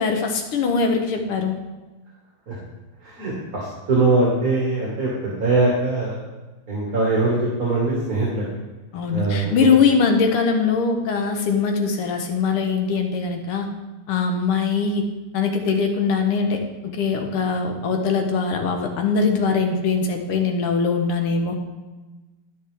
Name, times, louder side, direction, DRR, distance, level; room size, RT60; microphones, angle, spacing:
voice 1, 0.0-1.6 8.9-13.7 14.1-15.0 15.3-16.6 16.9-21.6, left 5 dB, 80° left, 4 dB, 1.9 m, -21 dB
voice 2, 3.0-6.2 6.7-8.4 9.1-9.5, right 2 dB, 40° right, -5 dB, 2.1 m, -22 dB
12.0 x 6.2 x 3.4 m, 1.2 s
omnidirectional pair, 2.4 m